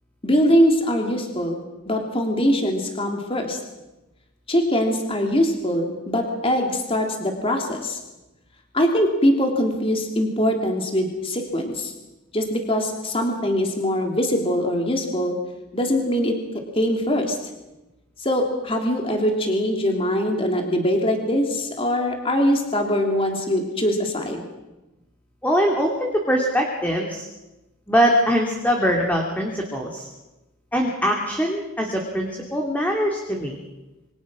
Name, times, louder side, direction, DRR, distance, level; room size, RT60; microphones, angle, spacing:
voice 1, 0.2-1.6 1.9-3.6 4.5-8.0 8.7-11.9 12.3-15.3 15.7-16.4 16.7-17.4 18.2-24.4, equal, 25° left, 2 dB, 3.1 m, -22 dB
voice 2, 25.4-27.3 27.9-30.1 30.7-33.6, equal, 5° left, 0 dB, 2.8 m, -22 dB
27.5 x 24.5 x 6.3 m, 1.0 s
head